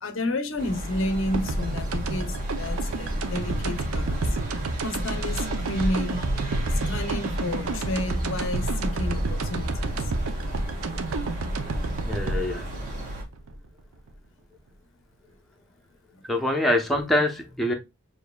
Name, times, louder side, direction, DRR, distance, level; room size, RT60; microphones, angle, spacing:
voice 1, 0.0-4.4 4.8-6.3 6.7-10.1, left 1 dB, 60° left, 0.6 m, -31 dB
sound 1, 0.6-13.2, right 1 dB, 35° right, 1.2 m, -35 dB
sound 2, 0.9-11.0, equal, 60° right, 1.2 m, -35 dB
sound 3, 1.3-14.1, right 2 dB, 75° right, 0.6 m, -30 dB
voice 2, 12.0-12.7 16.3-17.7, left 1 dB, ahead, 0.7 m, -24 dB
6.7 x 2.7 x 2.2 m
head